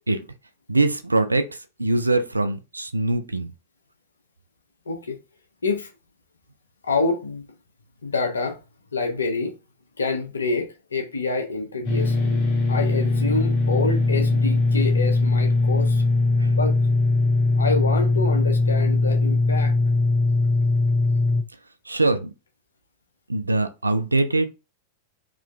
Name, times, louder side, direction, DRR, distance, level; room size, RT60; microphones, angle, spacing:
voice 1, 0.7-1.5 1.8-3.5 16.4-16.5 21.9-22.3 23.3-24.5, right 2 dB, 80° right, 0.4 m, -22 dB
voice 2, 4.9-5.2 5.6-5.9 6.8-7.5 8.0-8.6 8.9-9.5 10.0-12.4 12.7-16.0 16.4-16.7 17.5-19.7, left 3 dB, 75° left, 0.9 m, -27 dB
sound 1, 11.8-21.4, left 2 dB, 40° left, 1.5 m, -20 dB
3.7 x 3.1 x 3.3 m
figure-of-eight pair, 90°, 0 cm